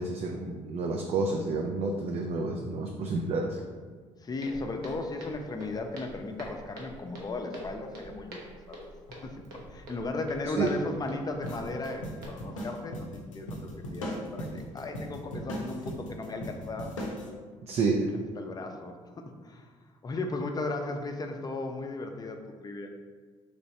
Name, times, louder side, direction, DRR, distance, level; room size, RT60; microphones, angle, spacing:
voice 1, 0.0-3.6 10.5-10.8 17.7-18.1, right 3 dB, 40° right, 2 dB, 0.4 m, -29 dB
voice 2, 4.2-8.4 8.7-9.4 9.7-17.0 18.4-19.7 20.0-22.9, left 2 dB, 25° left, 4 dB, 0.5 m, -36 dB
Walk footsteps, 4.4-12.3, right 1 dB, 65° right, 0.8 m, -46 dB
sound 1, 11.4-17.3, equal, 90° left, 0.5 m, -38 dB
3.2 x 2.9 x 2.8 m, 1.5 s
hypercardioid pair, 55°, 16 cm